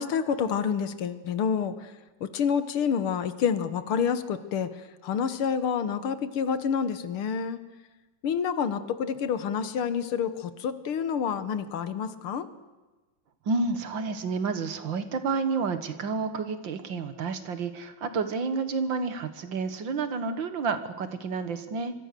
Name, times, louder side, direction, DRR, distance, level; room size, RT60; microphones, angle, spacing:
voice 1, 0.0-1.9 2.2-4.7 5.0-7.6 8.2-12.5, left 7 dB, 85° left, 12 dB, 2.1 m, -28 dB
voice 2, 13.5-21.9, right 4 dB, 65° right, 10 dB, 2.2 m, -30 dB
25.0 x 24.0 x 6.9 m, 1.2 s
omnidirectional pair, 2.3 m